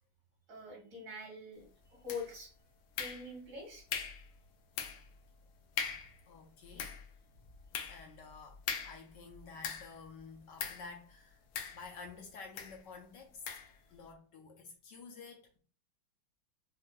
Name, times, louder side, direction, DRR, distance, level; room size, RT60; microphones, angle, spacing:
voice 1, 0.5-2.5 3.0-3.8 11.7-11.8, left 3 dB, 60° right, 2.8 m, -45 dB
sound 1, 2.1-2.5 3.0-3.5 3.9-4.3 4.8-5.1 5.4-5.5 5.8-6.2 6.6-10.1 10.6-10.9 11.6-12.1 12.6-12.8 13.5-13.7, left 7 dB, 85° left, 1.5 m, -40 dB
voice 2, 5.9-6.9 7.3-7.5 7.9-11.4 11.7-13.6 13.9-15.6, left 4 dB, 65° left, 1.2 m, -51 dB
5.7 x 2.8 x 2.2 m
omnidirectional pair, 2.4 m